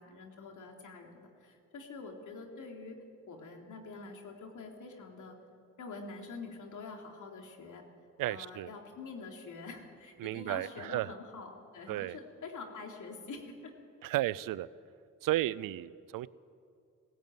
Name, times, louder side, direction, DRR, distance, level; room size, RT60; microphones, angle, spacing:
voice 1, 0.0-3.0 3.3-5.4 5.8-7.8 8.3-13.7, left 4 dB, 65° left, 2 dB, 3.6 m, -46 dB
voice 2, 8.2-8.7 10.2-11.1 11.9-12.2 14.0-14.7 15.2-16.3, right 15 dB, 75° right, 20 dB, 0.6 m, -33 dB
18.0 x 16.0 x 9.3 m, 2.4 s
supercardioid pair, 50°, 33 cm